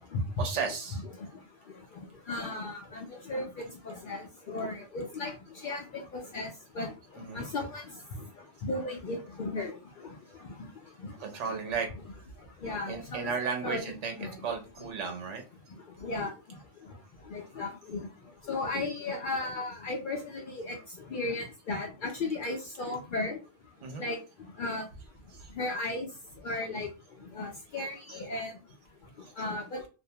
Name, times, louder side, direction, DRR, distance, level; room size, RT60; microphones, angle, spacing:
voice 1, 0.4-1.0 7.2-7.5 11.2-11.9 12.9-15.4 23.8-24.0 25.3-25.5 29.2-29.3, right 5 dB, 75° right, 4 dB, 1.0 m, -34 dB
voice 2, 1.2-11.4 12.4-13.3 13.6-14.4 15.9-17.0 17.2-18.1 18.4-23.4 24.0-24.9 25.5-26.1 26.4-26.9 27.2-28.5 29.4-29.8, left 2 dB, 60° left, 1 dB, 0.5 m, -36 dB
2.5 x 2.1 x 2.7 m, 0.32 s
omnidirectional pair, 1.2 m